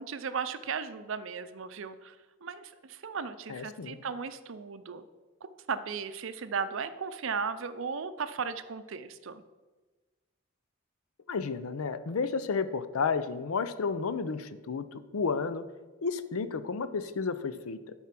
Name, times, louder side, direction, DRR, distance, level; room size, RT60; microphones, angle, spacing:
voice 1, 0.0-2.2 2.4-5.0 5.4-9.4, right 5 dB, 65° right, 12 dB, 0.5 m, -36 dB
voice 2, 3.5-4.0 11.3-15.6 16.0-17.8, left 5 dB, 85° left, 13 dB, 0.5 m, -32 dB
11.0 x 4.4 x 5.9 m, 1.3 s
head